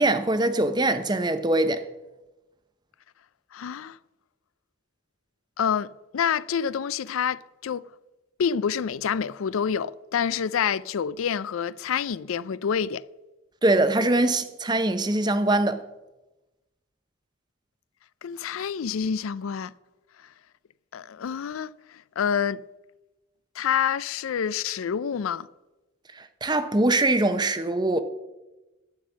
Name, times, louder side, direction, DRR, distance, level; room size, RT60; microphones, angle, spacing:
voice 1, 0.0-1.8 13.6-15.8 26.2-28.0, right 2 dB, 20° right, 0.7 m, -23 dB
voice 2, 3.5-4.0 5.6-7.8 8.4-13.0 18.2-19.7 20.2-20.3 20.9-22.6 23.6-25.5, left 7 dB, 75° left, 0.4 m, -27 dB
11.5 x 9.4 x 6.1 m
head